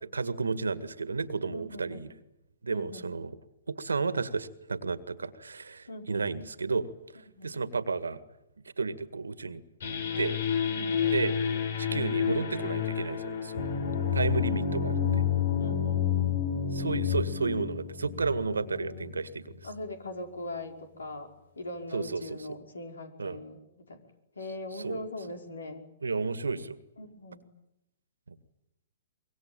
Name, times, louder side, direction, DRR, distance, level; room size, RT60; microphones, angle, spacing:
voice 1, 0.1-2.1 2.6-3.4 3.7-6.9 7.4-8.2 8.8-9.6 10.2-10.4 11.1-11.3 11.8-13.8 14.1-15.2 16.7-19.6 21.9-22.5 23.2-23.4 24.8-25.0 26.0-26.8 28.3-28.4, right 4 dB, 85° right, 13 dB, 1.9 m, -32 dB
voice 2, 1.5-2.0 2.7-3.1 5.9-6.2 7.3-7.6 10.8-11.1 15.6-16.2 18.5-19.1 19.6-21.3 21.6-24.0 24.4-25.8 27.0-27.4, left 2 dB, 85° left, 5 dB, 5.3 m, -41 dB
sound 1, 9.8-19.2, left 8 dB, 65° left, 5.2 m, -29 dB
25.0 x 23.0 x 9.1 m, 0.86 s
hypercardioid pair, 120°, 0 cm